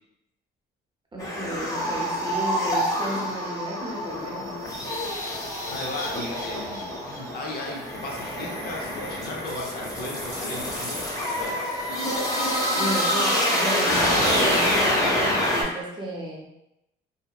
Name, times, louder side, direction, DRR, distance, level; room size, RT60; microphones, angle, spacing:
voice 1, 1.1-4.6 12.7-16.5, right 1 dB, 25° right, -4 dB, 0.8 m, -33 dB
sound 1, 1.2-15.6, equal, 15° left, 0.7 m, -26 dB
voice 2, 5.7-11.6, left 2 dB, 50° left, -1 dB, 0.6 m, -36 dB
2.7 x 2.1 x 2.3 m, 0.86 s
cardioid pair, 90°, 20 cm